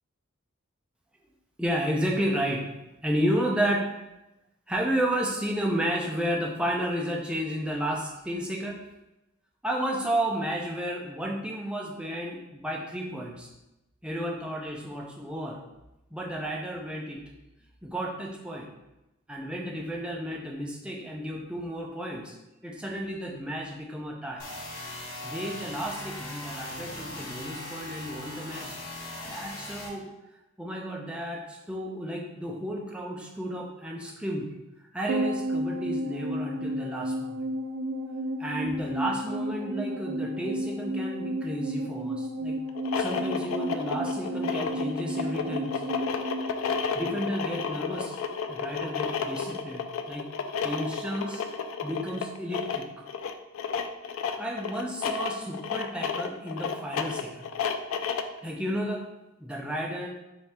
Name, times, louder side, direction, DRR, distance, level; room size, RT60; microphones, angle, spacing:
voice 1, 1.6-2.7 3.0-3.9 4.7-8.8 9.6-13.5 14.0-15.6 16.1-17.2 17.8-18.7 19.3-22.4 22.6-24.4 25.2-28.8 29.3-30.1 30.6-34.5 34.9-37.4 38.4-42.6 43.0-45.8 46.9-48.2 48.5-50.3 50.6-51.4 51.8-53.0 54.4-57.5 58.4-59.0 59.4-60.1, equal, 5° right, -1 dB, 0.5 m, -32 dB
sound 1, 24.4-29.9, left 1 dB, 90° left, 1.2 m, -39 dB
sound 2, 35.1-47.6 47.9-48.0, right 1 dB, 90° right, 0.4 m, -32 dB
sound 3, 42.7-58.4, left 6 dB, 70° left, 0.3 m, -32 dB
4.4 x 2.7 x 3.3 m, 0.94 s
head